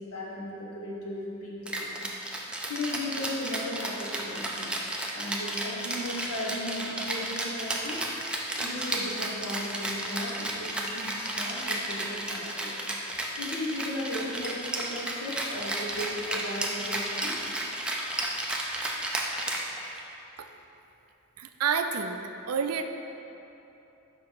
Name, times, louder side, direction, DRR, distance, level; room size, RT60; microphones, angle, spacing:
voice 1, 0.0-2.0 2.6-8.0 8.5-12.7 13.3-17.4, left 1 dB, 85° left, -4 dB, 1.3 m, -36 dB
Rattle (instrument), 1.7-20.1, right 1 dB, 5° right, 0.5 m, -33 dB
voice 2, 21.4-22.2 22.5-22.8, right 6 dB, 80° right, 7 dB, 0.4 m, -28 dB
5.7 x 5.1 x 4.6 m, 3.0 s
head